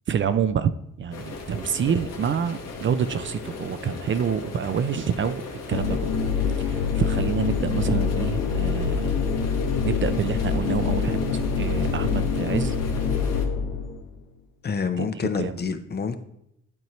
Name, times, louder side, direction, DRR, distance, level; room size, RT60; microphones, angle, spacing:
voice 1, 0.1-0.7 1.0-5.4 5.7-6.1 6.6-9.2 9.8-12.7 15.0-15.1 15.4-15.5, right 7 dB, 40° right, 12 dB, 0.4 m, -27 dB
sound 1, 1.1-13.4, left 4 dB, 55° left, 1.4 m, -37 dB
sound 2, 5.7-14.0, left 5 dB, 80° left, 1.0 m, -25 dB
voice 2, 14.6-16.2, left 5 dB, 35° left, 9 dB, 0.7 m, -27 dB
11.0 x 4.4 x 3.1 m, 0.78 s
cardioid pair, 90°, 30 cm